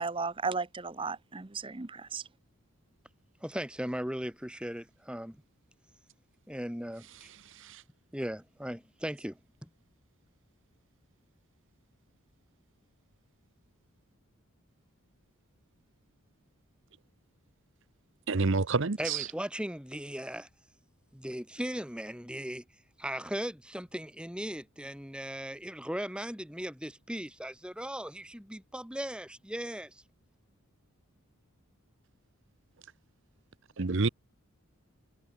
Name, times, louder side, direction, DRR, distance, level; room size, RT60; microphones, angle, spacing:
voice 1, 0.0-2.2, right 4 dB, 25° right, 0.8 m, -35 dB
voice 2, 3.4-5.4 6.5-7.3 8.1-9.7 19.0-20.5 21.1-22.6 23.0-30.0, equal, 5° right, 3.7 m, -38 dB
voice 3, 18.3-19.3 33.8-34.1, right 3 dB, 55° right, 0.8 m, -28 dB
head